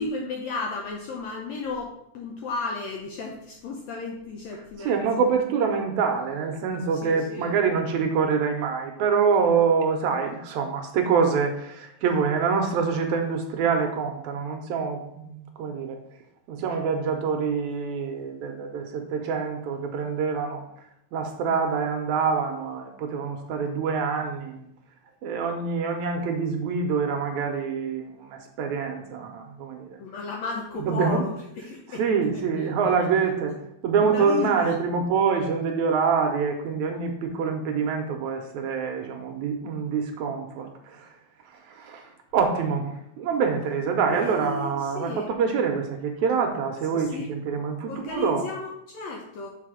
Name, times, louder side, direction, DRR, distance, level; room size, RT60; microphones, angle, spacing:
voice 1, 0.0-5.2 6.9-7.6 30.0-32.1 32.3-32.5 33.0-33.1 34.0-34.7 44.1-45.4 46.9-47.4 47.9-49.5, left 4 dB, 80° left, 0 dB, 1.5 m, -34 dB
voice 2, 4.8-16.0 16.5-20.6 21.1-24.7 25.2-30.0 30.7-31.3 31.9-33.5 33.8-41.1 41.7-48.5, right 5 dB, 75° right, 4 dB, 1.8 m, -26 dB
6.7 x 4.7 x 4.9 m, 0.78 s
omnidirectional pair, 4.0 m